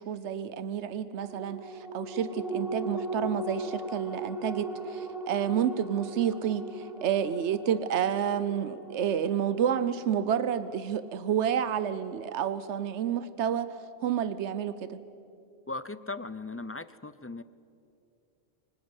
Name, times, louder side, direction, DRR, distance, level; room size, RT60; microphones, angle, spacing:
voice 1, 0.0-13.7 14.0-15.0, right 9 dB, 85° right, 13 dB, 1.1 m, -30 dB
sound 1, 1.2-12.0 12.4-12.5, right 1 dB, ahead, 1.4 m, -39 dB
voice 2, 15.7-17.4, left 3 dB, 20° left, 15 dB, 0.3 m, -38 dB
25.0 x 19.5 x 9.7 m, 2.6 s
omnidirectional pair, 1.1 m